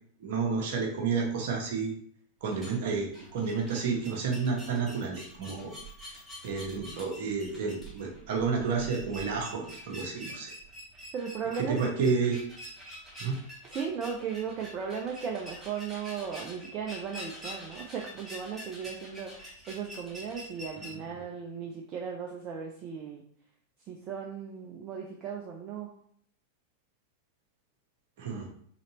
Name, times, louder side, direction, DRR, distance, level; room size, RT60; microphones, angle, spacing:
voice 1, 0.2-1.9 2.4-5.7 6.0-6.1 6.4-10.5 11.7-12.4 13.2-13.4 20.8-21.0 28.2-28.5, right 5 dB, 50° right, 1 dB, 1.2 m, -30 dB
sound 1, 2.4-20.9, equal, 10° right, 1.5 m, -46 dB
voice 2, 11.1-11.8 13.6-23.2 23.9-26.0, right 7 dB, 35° right, 0 dB, 0.6 m, -36 dB
4.1 x 3.9 x 3.0 m, 0.63 s
figure-of-eight pair, 90°, 0 cm